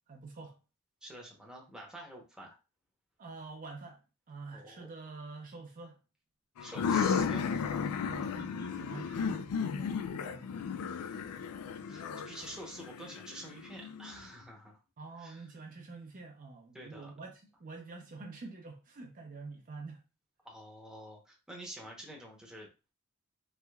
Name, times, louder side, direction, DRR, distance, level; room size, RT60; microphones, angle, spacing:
voice 1, 0.1-0.6 3.2-4.0 4.3-6.0 8.0-10.5 15.0-17.3 17.6-20.0, right 3 dB, 40° right, 0.5 m, -46 dB
voice 2, 1.0-2.6 4.5-4.9 6.6-7.5 11.0-11.5 11.9-14.8 15.2-15.5 16.7-17.1 20.4-22.7, right 1 dB, 5° right, 0.8 m, -48 dB
sound 1, 6.6-14.2, left 6 dB, 85° left, 0.3 m, -34 dB
3.2 x 3.0 x 2.2 m
head